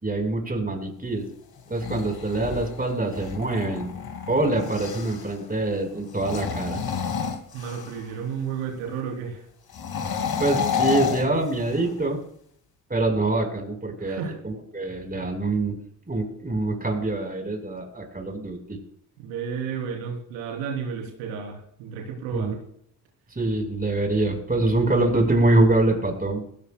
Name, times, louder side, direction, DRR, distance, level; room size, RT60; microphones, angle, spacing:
voice 1, 0.0-1.3 1.7-3.9 4.3-6.8 10.4-12.2 12.9-15.7 16.1-18.8 22.3-22.5 23.3-26.4, right 2 dB, 20° right, 3 dB, 4.9 m, -25 dB
sound 1, 1.6-5.3 6.1-8.1 9.7-12.0, left 7 dB, 45° left, 2.4 m, -30 dB
voice 2, 7.5-9.4 14.0-14.3 15.1-15.3 19.2-22.6, right 6 dB, 80° right, 0 dB, 3.8 m, -32 dB
19.0 x 17.0 x 2.4 m, 0.65 s
hypercardioid pair, 50°, 48 cm